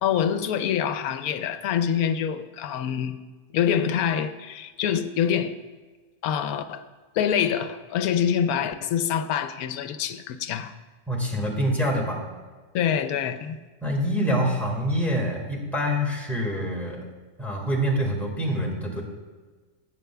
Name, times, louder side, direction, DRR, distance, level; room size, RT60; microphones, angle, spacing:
voice 1, 0.0-3.2 3.5-5.6 6.2-6.8 7.1-10.7 12.7-13.6, left 8 dB, 85° left, 11 dB, 1.1 m, -25 dB
voice 2, 11.1-12.2 13.8-17.1 17.4-19.0, equal, ahead, -1 dB, 1.6 m, -26 dB
15.5 x 7.9 x 2.3 m, 1.4 s
omnidirectional pair, 1.5 m